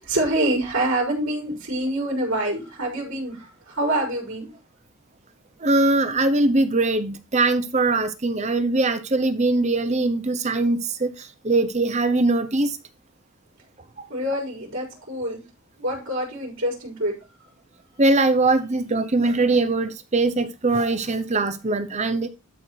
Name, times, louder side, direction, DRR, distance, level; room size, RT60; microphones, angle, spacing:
voice 1, 0.0-4.5 14.1-15.4 15.8-17.1, right 1 dB, 65° right, 4.9 m, -26 dB
voice 2, 5.6-12.7 18.0-22.3, right 2 dB, 30° right, 0.8 m, -21 dB
12.5 x 4.6 x 4.5 m
head